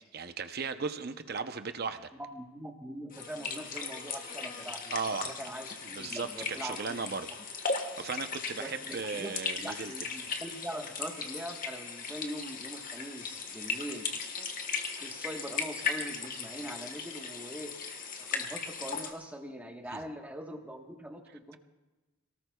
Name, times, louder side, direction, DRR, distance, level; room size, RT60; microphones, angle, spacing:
voice 1, 0.1-2.1 4.9-5.3 6.0-6.3 6.6-7.3 7.8-9.9 19.9-20.0, right 5 dB, 45° right, 9 dB, 0.7 m, -36 dB
voice 2, 2.1-4.9 5.2-7.0 8.6-14.1 14.4-14.5 14.9-17.7 18.2-21.6, equal, 5° right, 2 dB, 1.2 m, -42 dB
sound 1, 3.1-19.1, left 5 dB, 40° left, 1.4 m, -37 dB
27.0 x 18.5 x 2.3 m, 1.1 s
head